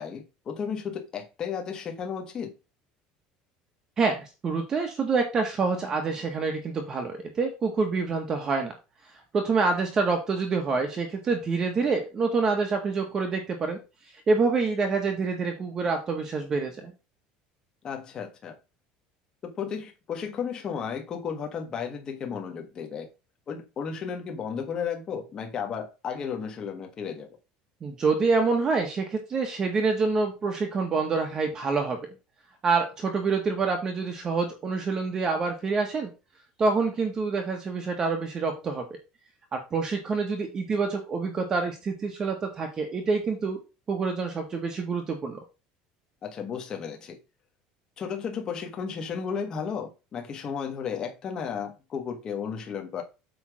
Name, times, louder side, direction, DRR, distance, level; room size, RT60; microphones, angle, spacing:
voice 1, 0.0-2.5 17.8-18.5 19.4-23.1 23.5-27.3 46.2-47.2 48.0-53.0, left 7 dB, 25° left, 1.4 m, -34 dB
voice 2, 4.0-8.7 9.3-13.8 14.3-16.9 27.8-32.0 32.6-36.1 36.6-38.8 39.5-43.6 43.9-45.4, right 4 dB, 20° right, 1.2 m, -26 dB
8.4 x 3.4 x 6.2 m
cardioid pair, 175°, 3 cm